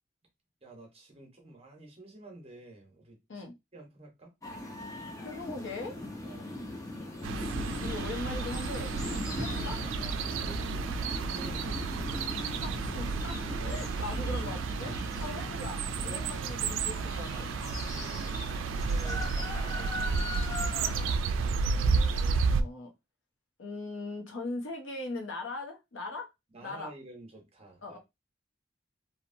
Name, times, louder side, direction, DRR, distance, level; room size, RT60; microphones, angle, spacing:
voice 1, 0.6-3.4 3.7-4.3 6.2-6.6 10.2-12.3 13.6-13.8 15.1-15.4 16.0-16.3 17.9-20.7 26.5-28.0, right 2 dB, 30° right, 0.9 m, -50 dB
sound 1, 4.4-21.2, left 1 dB, 20° left, 0.6 m, -40 dB
voice 2, 5.2-6.0 7.4-7.5 7.8-9.0 9.3-9.8 12.3-14.9 15.2-17.5 20.6-22.9 23.6-26.3 26.6-26.9 27.8-28.0, left 2 dB, 85° left, 0.7 m, -40 dB
sound 2, 7.2-22.6, right 4 dB, 85° right, 0.3 m, -32 dB
2.9 x 2.1 x 2.6 m
head